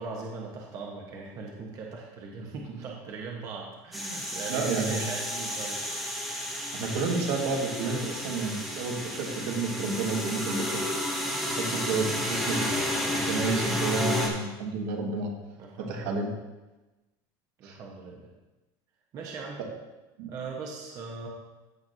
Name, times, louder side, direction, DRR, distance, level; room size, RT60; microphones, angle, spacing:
voice 1, 0.0-5.8 12.3-13.5 15.6-16.0 17.6-18.3 19.1-19.6 20.3-21.3, right 4 dB, 35° right, -1 dB, 1.0 m, -39 dB
sound 1, 3.9-14.3, left 1 dB, ahead, 1.1 m, -31 dB
voice 2, 4.5-5.1 6.7-10.8 11.5-12.7 13.1-15.3 15.8-16.3 17.6-17.8 20.2-20.3, right 4 dB, 75° right, 1 dB, 1.6 m, -30 dB
14.5 x 5.9 x 2.7 m, 1.1 s
cardioid pair, 180°, 11 cm